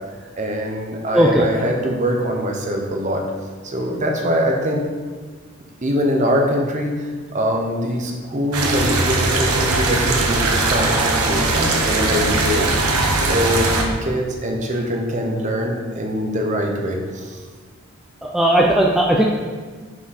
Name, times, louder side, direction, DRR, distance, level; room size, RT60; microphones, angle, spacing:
voice 1, 0.4-3.2 3.6-4.9 5.8-17.4, equal, 35° right, 1 dB, 0.8 m, -23 dB
voice 2, 1.1-1.4 18.2-19.2, right 1 dB, ahead, -2 dB, 0.3 m, -16 dB
sound 1, 8.5-13.8, right 2 dB, 80° right, 0.9 m, -19 dB
5.9 x 4.8 x 4.1 m, 1.5 s
head